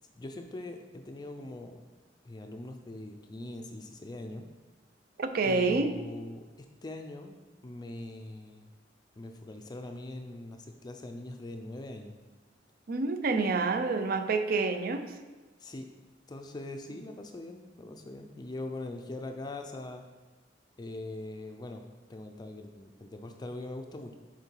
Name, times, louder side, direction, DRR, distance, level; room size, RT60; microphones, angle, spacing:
voice 1, 0.2-1.8 2.2-4.5 5.4-7.4 7.6-8.7 9.2-12.1 15.6-15.9 16.3-20.0 20.8-21.8 22.1-24.1, left 2 dB, 20° left, 4 dB, 0.4 m, -42 dB
voice 2, 5.2-5.9 12.9-15.2, right 3 dB, 55° right, 9 dB, 0.5 m, -28 dB
6.6 x 4.7 x 4.5 m, 1.3 s
head